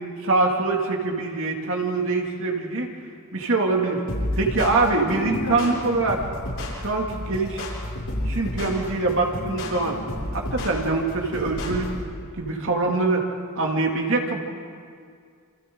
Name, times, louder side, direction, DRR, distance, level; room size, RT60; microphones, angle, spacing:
voice 1, 0.2-2.9 3.3-4.0 4.4-6.2 6.8-7.6 8.3-10.0 10.3-11.9 12.4-13.3 13.5-14.4, right 3 dB, 65° right, 0 dB, 2.6 m, -24 dB
sound 1, 4.1-12.1, left 1 dB, 80° left, 7.4 m, -31 dB
28.0 x 28.0 x 3.9 m, 2.2 s
head